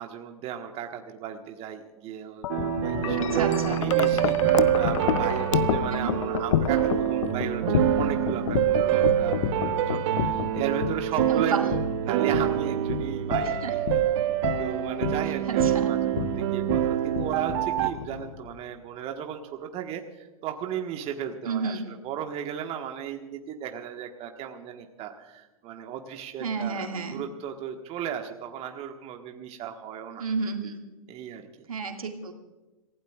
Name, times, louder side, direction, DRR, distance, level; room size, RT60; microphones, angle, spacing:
voice 1, 0.0-13.8 14.3-30.2 31.1-31.5, right 9 dB, 35° right, 4 dB, 1.4 m, -36 dB
Wind chime, 2.4-18.6, left 12 dB, 60° left, 0.6 m, -31 dB
sound 1, 2.5-17.9, right 11 dB, 50° right, 1.1 m, -26 dB
voice 2, 3.2-3.8 5.9-6.1 11.3-11.7 13.6-13.7 15.5-15.9 21.5-21.9 26.4-27.2 30.2-30.8 31.7-32.3, right 5 dB, 75° right, 4 dB, 2.1 m, -31 dB
28.0 x 16.0 x 2.4 m, 1.2 s
figure-of-eight pair, 100°, 18 cm